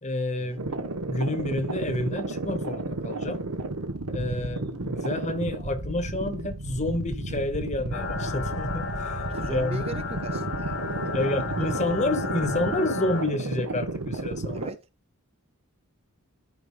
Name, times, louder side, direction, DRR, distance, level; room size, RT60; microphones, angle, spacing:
voice 1, 0.0-3.4 4.1-9.8 11.1-14.7, left 2 dB, 30° left, 1.5 m, -29 dB
sound 1, 0.6-14.7, right 2 dB, 90° right, 1.2 m, -33 dB
sound 2, 7.9-13.2, left 3 dB, 60° left, 2.0 m, -33 dB
voice 2, 9.3-11.3 11.6-11.8 14.5-14.9, right 3 dB, 25° right, 0.5 m, -39 dB
13.5 x 5.1 x 2.3 m
head